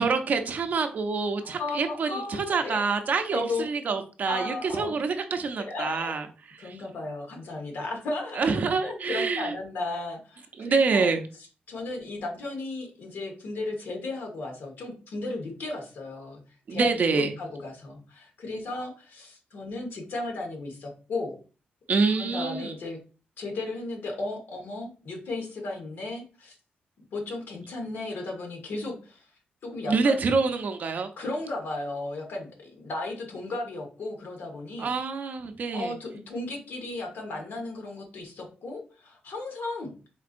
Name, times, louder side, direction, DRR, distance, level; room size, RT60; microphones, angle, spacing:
voice 1, 0.0-6.3 6.5-6.8 8.3-9.5 10.6-11.2 16.7-17.3 21.9-22.7 29.9-31.1 34.8-35.9, right 4 dB, 50° right, 6 dB, 0.6 m, -26 dB
voice 2, 1.4-2.8 3.3-3.7 4.3-5.0 5.6-6.2 6.6-8.5 8.8-11.1 11.7-16.4 16.7-21.3 22.2-23.0 23.4-26.5 27.1-29.3 29.6-30.1 31.2-34.9 35.7-39.9, left 2 dB, 70° left, 1 dB, 1.3 m, -35 dB
4.4 x 4.0 x 2.5 m, 0.36 s
wide cardioid pair, 160°, 4 cm